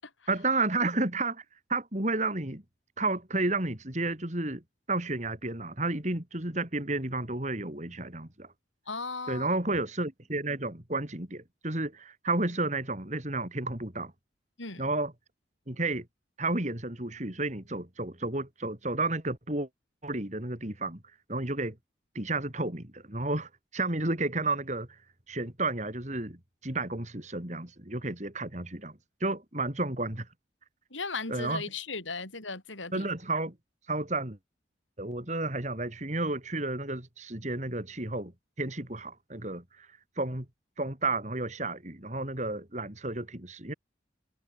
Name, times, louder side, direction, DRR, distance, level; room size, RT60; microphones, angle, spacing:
voice 1, 0.3-1.4 1.7-2.6 3.0-4.6 4.9-8.5 9.3-14.1 14.8-15.1 15.7-16.1 16.4-19.7 20.0-21.0 21.3-21.8 22.1-25.0 25.3-30.3 31.3-31.6 32.9-33.5 33.9-34.4 35.0-38.3 38.6-40.5 40.8-43.7, right 2 dB, 40° right, 3.2 m, -32 dB
voice 2, 8.9-9.5 14.6-14.9 30.9-33.1, left 4 dB, 90° left, 7.1 m, -37 dB
head